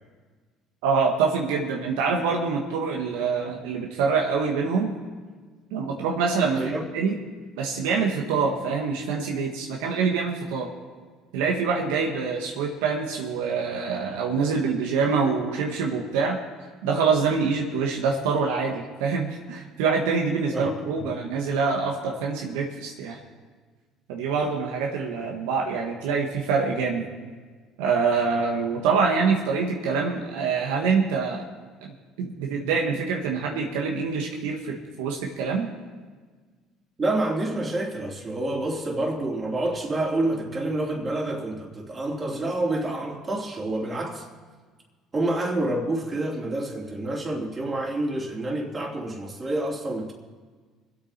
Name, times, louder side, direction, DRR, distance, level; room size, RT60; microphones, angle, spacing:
voice 1, 0.8-4.9 5.7-7.2 7.6-10.7 11.3-16.4 16.8-23.2 24.1-27.0 27.8-31.4 32.2-35.7, right 5 dB, 85° right, 1.6 m, -25 dB
voice 2, 37.0-44.2 45.1-50.1, right 2 dB, 30° right, 3.4 m, -28 dB
25.5 x 8.6 x 4.4 m
supercardioid pair, 80°, 0 cm